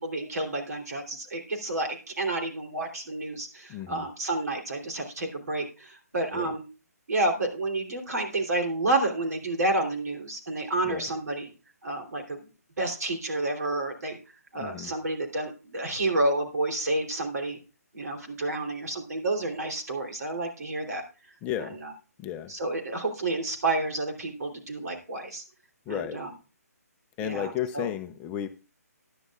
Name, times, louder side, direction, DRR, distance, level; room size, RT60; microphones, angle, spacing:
voice 1, 0.0-6.6 7.1-11.5 11.8-12.4 12.8-14.2 14.5-17.6 17.9-21.0 21.6-21.9 22.5-25.4 25.9-26.3 27.2-27.9, right 2 dB, 70° right, 3 dB, 3.1 m, -30 dB
voice 2, 3.7-4.1 6.3-6.5 10.8-11.1 14.6-14.9 21.4-21.8 22.2-22.5 25.9-26.2 27.2-28.5, left 11 dB, 15° left, 8 dB, 0.4 m, -33 dB
14.5 x 10.0 x 2.4 m, 0.34 s
hypercardioid pair, 155°, 9 cm